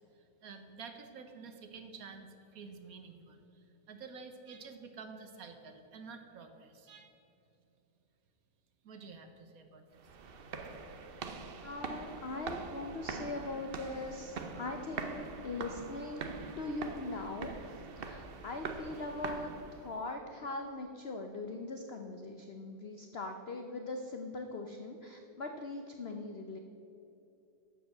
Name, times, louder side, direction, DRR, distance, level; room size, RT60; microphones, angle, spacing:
voice 1, 0.1-2.3 2.5-7.1 8.8-10.0, right 5 dB, 60° right, 6 dB, 1.1 m, -50 dB
sound 1, 10.0-20.0, right 4 dB, 85° right, 0.5 m, -43 dB
voice 2, 11.6-16.3 16.6-26.6, left 2 dB, 90° left, 5 dB, 0.5 m, -41 dB
11.5 x 5.0 x 7.6 m, 2.9 s
omnidirectional pair, 2.0 m